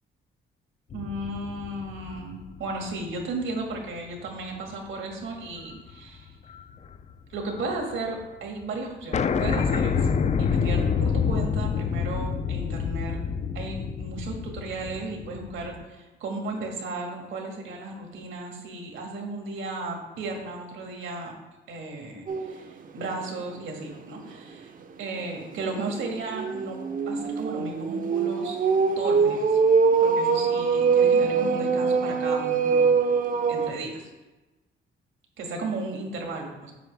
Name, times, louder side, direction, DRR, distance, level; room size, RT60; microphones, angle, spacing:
sound 1, 0.9-3.5 4.0-4.1 5.6-5.9 6.2-7.6 7.9-8.0 8.2-8.3 8.6-8.7 9.1-15.8, left 6 dB, 35° left, 0.4 m, -27 dB
voice 1, 0.9-6.3 7.3-10.1 10.4-13.2 13.5-21.3 21.7-24.7 25.0-26.8 27.1-28.6 29.0-29.6 30.0-32.9 33.5-34.1 35.4-36.7, right 2 dB, 75° right, 1 dB, 1.9 m, -35 dB
sound 2, 22.3-22.6 23.1-23.2 23.6-23.7 25.7-33.7, right 5 dB, 45° right, 0.8 m, -23 dB
7.6 x 6.0 x 3.4 m, 1.1 s
cardioid pair, 90°, 20 cm